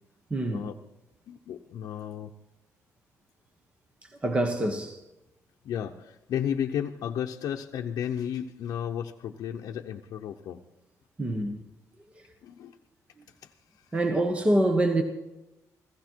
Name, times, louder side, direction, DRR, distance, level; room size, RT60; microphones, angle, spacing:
voice 1, 0.3-0.6 4.2-5.0 11.2-11.6 13.9-15.0, right 1 dB, 20° right, 1.2 m, -25 dB
voice 2, 1.3-2.3 5.6-10.6 12.4-12.7 13.4-13.5, left 9 dB, 75° left, 0.8 m, -33 dB
16.0 x 15.0 x 4.6 m
cardioid pair, 135°, 6 cm